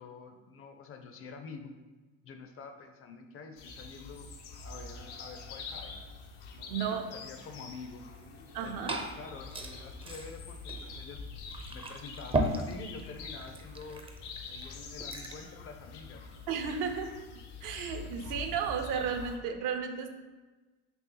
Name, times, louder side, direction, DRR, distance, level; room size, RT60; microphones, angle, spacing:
voice 1, 0.0-1.7 2.2-4.3 4.6-5.9 6.5-8.0 8.6-11.2 11.7-14.0 14.5-16.3, left 4 dB, 40° left, 6 dB, 0.5 m, -47 dB
sound 1, 3.6-19.4, left 4 dB, 80° left, 0.7 m, -45 dB
voice 2, 6.7-7.1 8.5-9.0 16.5-17.1 17.6-20.1, right 6 dB, 65° right, 6 dB, 0.6 m, -33 dB
Glass / Fill (with liquid), 8.4-15.5, right 2 dB, 15° right, 0.4 m, -38 dB
3.1 x 3.0 x 3.7 m, 1.2 s
supercardioid pair, 75°, 35 cm